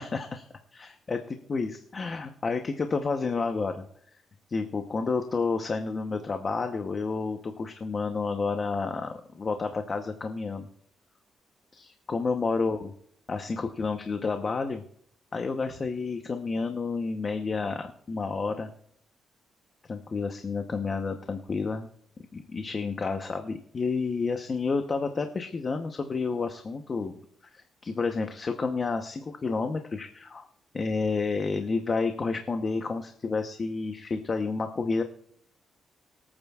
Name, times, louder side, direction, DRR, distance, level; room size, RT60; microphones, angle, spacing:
voice 1, 0.0-3.8 4.5-10.7 11.7-12.9 13.3-14.8 15.3-18.7 19.9-21.9 22.3-27.1 27.5-30.5 30.7-35.0, left 4 dB, 35° left, 5 dB, 0.9 m, -30 dB
23.5 x 8.8 x 2.4 m, 0.66 s
cardioid pair, 115°, 0 cm